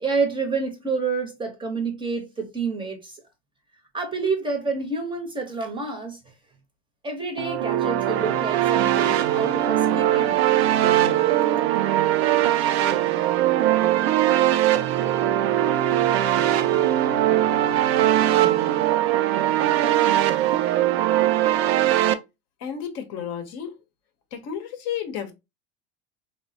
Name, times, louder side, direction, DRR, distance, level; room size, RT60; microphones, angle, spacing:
voice 1, 0.0-3.2 3.9-6.2 7.0-10.6, right 4 dB, 15° right, 0.7 m, -28 dB
sound 1, 7.4-22.1, right 12 dB, 70° right, 0.5 m, -21 dB
voice 2, 22.6-23.7 24.3-25.3, left 8 dB, 50° left, 0.7 m, -32 dB
3.3 x 2.0 x 2.6 m
hypercardioid pair, 100°, 33 cm